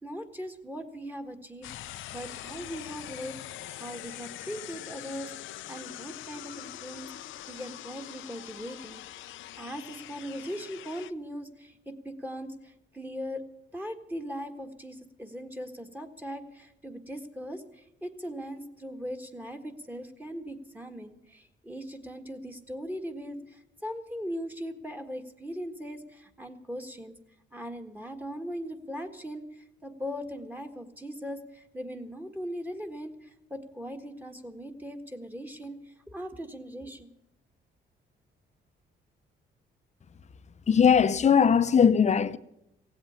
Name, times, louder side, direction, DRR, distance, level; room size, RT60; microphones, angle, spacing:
voice 1, 0.0-13.4 13.7-27.1 27.5-37.1, equal, 10° right, 1.6 m, -40 dB
sound 1, 1.6-11.1, left 14 dB, 80° left, 0.6 m, -43 dB
voice 2, 40.7-42.4, left 7 dB, 35° left, 0.7 m, -20 dB
16.5 x 8.1 x 10.0 m
cardioid pair, 90°, 20 cm